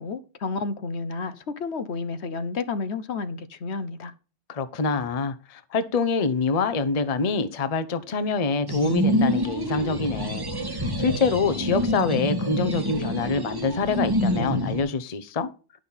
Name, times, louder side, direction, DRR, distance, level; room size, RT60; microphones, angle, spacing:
voice 1, 0.0-4.1, left 4 dB, 65° left, 1.1 m, -31 dB
voice 2, 4.5-15.5, left 4 dB, 35° left, 0.8 m, -26 dB
sound 1, 8.7-14.8, equal, 20° right, 1.4 m, -26 dB
10.5 x 6.2 x 5.6 m
omnidirectional pair, 1.2 m